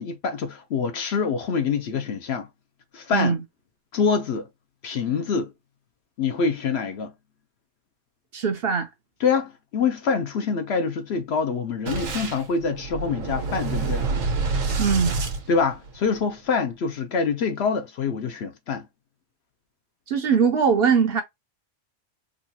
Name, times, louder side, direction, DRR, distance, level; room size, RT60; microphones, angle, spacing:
voice 1, 0.0-2.5 2.9-3.4 3.9-4.5 4.8-5.5 6.2-7.1 9.2-14.0 15.5-18.9, left 5 dB, 60° left, 0.8 m, -25 dB
voice 2, 8.3-8.9 14.8-15.2 20.1-21.2, right 6 dB, 60° right, 0.7 m, -21 dB
Boom, 11.9-16.2, right 4 dB, 80° right, 1.3 m, -27 dB
3.8 x 2.4 x 2.7 m
omnidirectional pair, 1.3 m